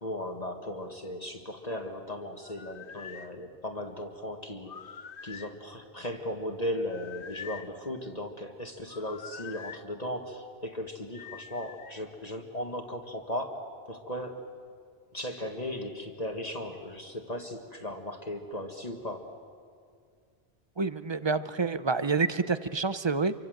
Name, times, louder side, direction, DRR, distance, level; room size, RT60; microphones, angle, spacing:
voice 1, 0.0-14.5 15.1-19.3, left 1 dB, 35° left, 3 dB, 1.8 m, -37 dB
sound 1, 2.4-3.3 4.6-5.6 6.9-7.7 8.9-9.8 11.1-12.0, left 7 dB, 55° left, 1.0 m, -45 dB
voice 2, 20.8-23.3, right 4 dB, 30° right, 13 dB, 0.6 m, -28 dB
27.5 x 24.5 x 7.9 m, 2.1 s
omnidirectional pair, 1.1 m